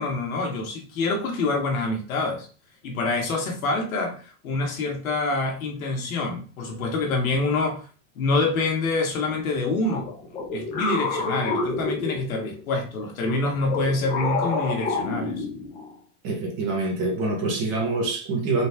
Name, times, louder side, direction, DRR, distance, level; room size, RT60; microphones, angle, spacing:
voice 1, 0.0-2.5 2.8-7.9 8.1-10.0 10.5-15.4, left 3 dB, 70° left, 1 dB, 1.6 m, -26 dB
sound 1, 9.9-12.6 13.2-15.9, left 3 dB, 15° left, 0.5 m, -29 dB
voice 2, 16.2-18.7, right 3 dB, 25° right, 0 dB, 0.9 m, -25 dB
4.0 x 3.2 x 3.4 m, 0.39 s
supercardioid pair, 165°, 43 cm